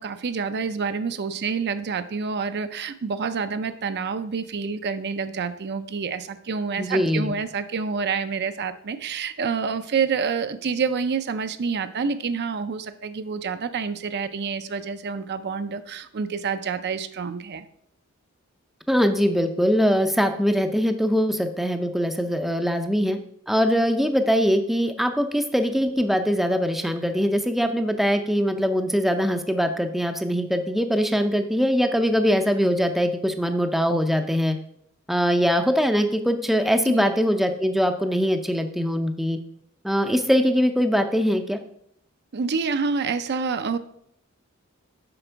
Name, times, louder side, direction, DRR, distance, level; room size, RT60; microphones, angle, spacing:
voice 1, 0.0-17.6 36.9-37.1 42.3-43.8, right 5 dB, 50° right, 11 dB, 0.5 m, -28 dB
voice 2, 6.8-7.3 18.9-23.2 23.5-34.6 35.1-39.4 39.8-41.6, equal, ahead, 7 dB, 0.5 m, -22 dB
7.8 x 5.9 x 4.5 m, 0.69 s
head